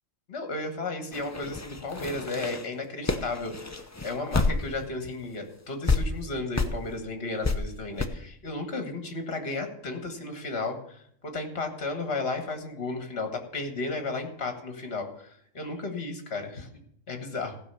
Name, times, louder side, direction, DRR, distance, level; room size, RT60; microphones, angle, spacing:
voice 1, 0.3-15.3 15.5-16.7 17.1-17.5, left 3 dB, 50° left, 5 dB, 1.8 m, -34 dB
sound 1, 1.1-4.9 5.2-5.3 5.9-6.0 6.6-6.8 7.4-7.6 8.0-8.1, left 3 dB, 20° left, 0.5 m, -28 dB
15.0 x 5.4 x 6.9 m, 0.69 s
omnidirectional pair, 1.4 m